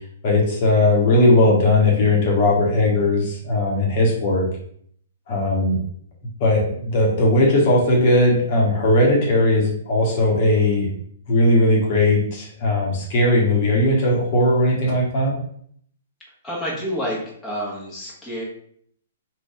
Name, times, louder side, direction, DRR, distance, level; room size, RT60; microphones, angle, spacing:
voice 1, 0.2-4.5 5.3-5.8 6.4-10.9 11.3-15.3, left 1 dB, 45° left, -2 dB, 1.3 m, -18 dB
voice 2, 16.4-18.4, equal, 10° left, -4 dB, 1.5 m, -28 dB
3.9 x 2.7 x 3.5 m, 0.63 s
figure-of-eight pair, 115°, 0 cm